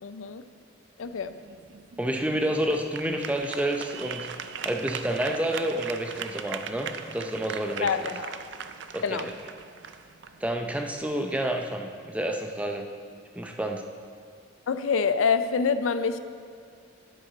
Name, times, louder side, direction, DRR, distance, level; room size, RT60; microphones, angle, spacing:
voice 1, 0.0-0.4 1.0-1.3 7.8-8.3 9.0-9.3 14.7-16.2, left 5 dB, 85° left, 11 dB, 0.4 m, -26 dB
sound 1, 1.0-11.1, right 7 dB, 60° right, 0.4 m, -40 dB
voice 2, 2.0-4.3 4.6-7.9 8.9-9.2 10.4-12.9 13.4-13.8, right 1 dB, 5° right, 3 dB, 0.5 m, -29 dB
10.0 x 8.8 x 3.9 m, 2.3 s
head